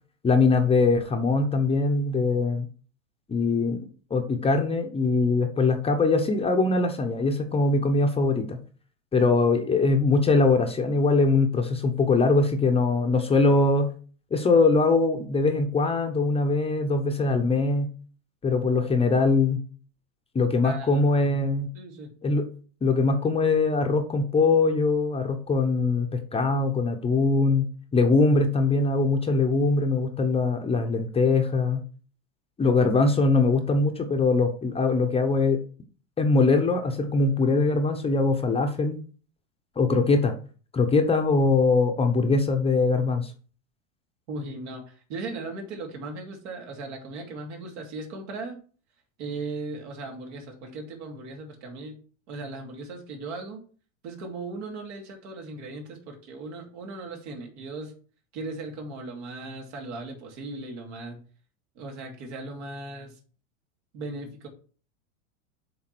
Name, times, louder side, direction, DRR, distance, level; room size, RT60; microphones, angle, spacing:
voice 1, 0.2-2.7 3.3-8.6 9.1-13.9 14.3-17.9 18.4-19.6 20.3-21.7 22.2-22.5 22.8-27.7 27.9-31.8 32.6-35.6 36.2-39.0 39.8-40.3 40.7-43.3, left 3 dB, 15° left, 5 dB, 0.9 m, -22 dB
voice 2, 20.6-21.1 21.7-22.1 44.3-48.6 49.2-52.0 52.3-53.6 54.0-57.9 58.3-61.2 61.7-63.2 63.9-64.5, right 3 dB, 65° right, 1 dB, 2.9 m, -37 dB
7.7 x 3.7 x 6.0 m, 0.41 s
supercardioid pair, 120°, 38 cm